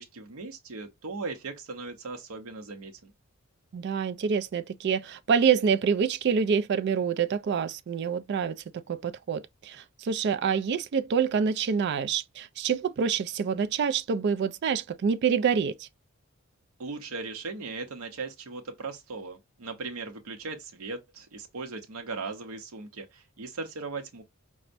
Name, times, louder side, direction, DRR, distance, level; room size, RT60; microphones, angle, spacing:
voice 1, 0.0-3.1 16.8-24.2, right 4 dB, 80° right, 0.7 m, -38 dB
voice 2, 3.7-15.9, right 6 dB, 50° right, 0.3 m, -27 dB
4.3 x 2.1 x 2.5 m
head